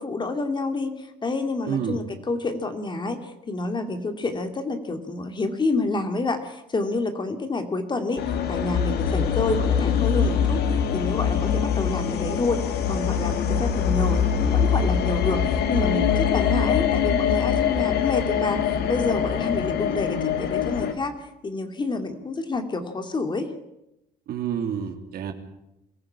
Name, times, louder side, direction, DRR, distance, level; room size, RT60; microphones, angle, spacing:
voice 1, 0.0-21.2 21.4-23.5, left 3 dB, 25° left, 7 dB, 2.5 m, -28 dB
voice 2, 1.6-2.0 24.3-25.3, right 8 dB, 65° right, 5 dB, 2.9 m, -28 dB
sound 1, 8.2-20.9, left 7 dB, 75° left, 2.3 m, -23 dB
22.5 x 14.5 x 8.8 m, 0.89 s
cardioid pair, 110°, 17 cm